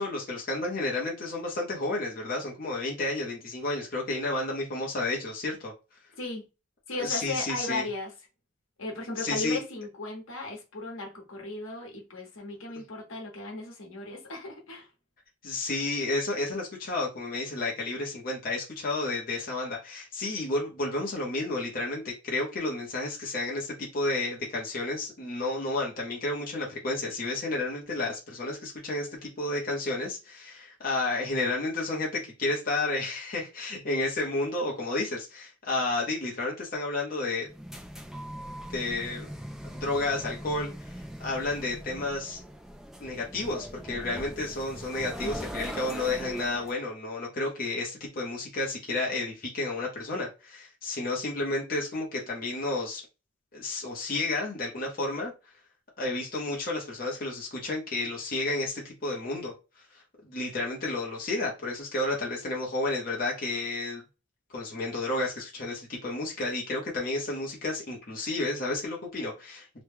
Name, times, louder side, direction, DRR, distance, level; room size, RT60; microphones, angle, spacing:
voice 1, 0.0-5.7 7.0-7.8 9.2-9.6 15.4-37.5 38.7-39.3 39.7-40.9 41.2-42.4 43.0-53.0 53.5-55.3 56.0-59.5 60.2-64.0 64.5-69.8, left 2 dB, 45° left, 0.8 m, -31 dB
voice 2, 6.9-8.1 8.8-14.9, left 2 dB, 75° left, 1.1 m, -36 dB
sound 1, 37.4-46.7, equal, ahead, 0.3 m, -40 dB
3.0 x 2.2 x 3.4 m
head